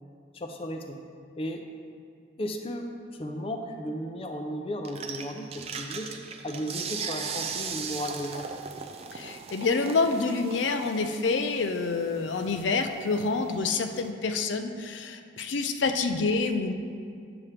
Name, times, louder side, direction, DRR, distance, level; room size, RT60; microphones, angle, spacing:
voice 1, 0.3-1.0 1.4-1.6 2.4-6.1 6.4-8.5, equal, 30° left, 4 dB, 0.5 m, -35 dB
sound 1, 4.8-14.1, right 6 dB, 35° right, 0.4 m, -39 dB
voice 2, 9.1-16.7, left 4 dB, 80° left, 6 dB, 0.5 m, -27 dB
8.6 x 7.0 x 3.3 m, 2.3 s
head